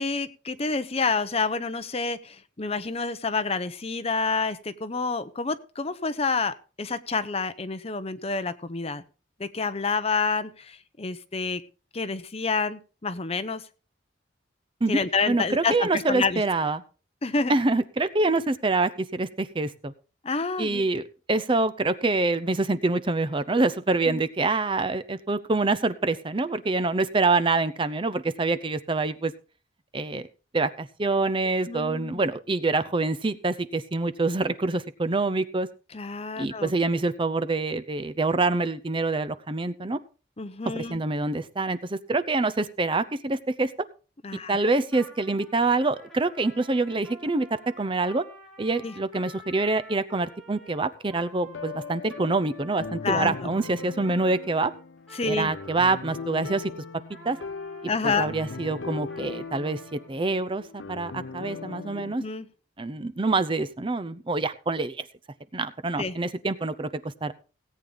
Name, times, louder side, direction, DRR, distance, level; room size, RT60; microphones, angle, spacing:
voice 1, 0.0-9.0 9.4-11.6 11.9-13.6 14.9-16.4 17.2-17.5 20.2-20.8 24.1-24.2 31.7-32.2 35.9-36.7 40.4-41.0 44.2-44.6 48.8-48.9 53.0-53.5 55.1-55.5 57.9-58.3 61.9-62.5 66.0-66.1, left 4 dB, 35° left, 12 dB, 0.8 m, -28 dB
voice 2, 15.3-16.8 17.5-19.9 20.6-29.3 29.9-30.2 30.5-35.7 36.4-40.0 40.7-43.7 44.5-47.5 47.8-48.2 48.6-54.7 55.2-56.7 57.2-57.4 58.0-60.6 60.9-62.2 62.8-65.0 65.5-67.3, right 3 dB, 30° right, 12 dB, 0.6 m, -26 dB
Trumpet, 44.9-56.6 57.1-60.1, right 1 dB, 5° left, 3.6 m, -49 dB
sound 1, 51.5-62.1, left 4 dB, 85° left, 0.6 m, -39 dB
17.5 x 8.7 x 3.9 m, 0.35 s
head